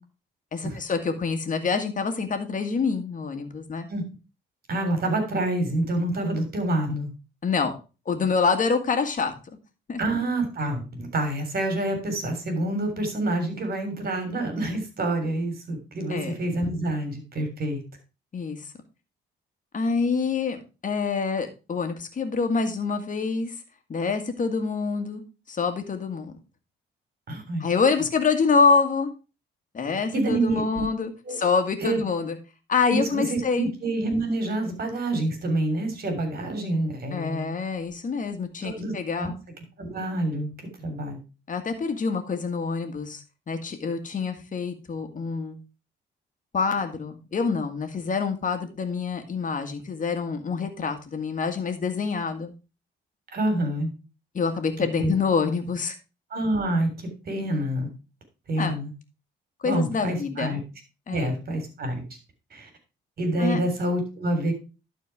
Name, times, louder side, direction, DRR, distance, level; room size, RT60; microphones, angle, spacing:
voice 1, 0.5-3.9 7.4-7.8 8.1-9.3 9.9-10.0 16.1-16.3 18.3-18.7 19.7-23.6 23.9-25.2 25.5-26.3 27.6-29.1 29.7-32.4 32.7-33.7 37.1-39.3 41.5-45.6 46.5-52.5 54.3-56.0 58.6-58.7 59.6-60.6 61.1-61.4 63.4-63.6, left 5 dB, 40° left, 6 dB, 1.9 m, -26 dB
voice 2, 4.7-7.1 10.0-17.8 27.3-27.7 30.1-30.8 31.3-31.4 31.8-32.0 32.9-37.5 38.6-38.9 39.2-39.3 39.8-40.5 40.8-41.2 53.3-53.9 55.0-55.1 56.3-56.9 57.3-57.9 58.5-58.9 59.6-60.6 61.1-62.0 62.5-62.7 63.2-64.5, right 1 dB, 50° right, 6 dB, 3.5 m, -27 dB
11.5 x 4.6 x 4.7 m, 0.31 s
cardioid pair, 90°, 20 cm